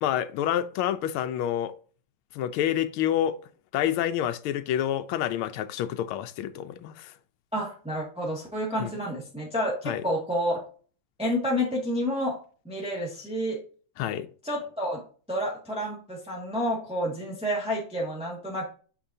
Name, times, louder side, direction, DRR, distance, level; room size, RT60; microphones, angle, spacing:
voice 1, 0.0-1.7 2.3-3.4 3.7-7.1 8.8-8.9 9.8-10.0 14.0-14.3, left 11 dB, 90° left, 1.5 m, -28 dB
voice 2, 7.5-10.6 11.2-12.4 12.6-13.6 14.4-15.0 15.3-18.7, equal, 5° right, 1.7 m, -29 dB
8.7 x 5.3 x 2.7 m
omnidirectional pair, 2.3 m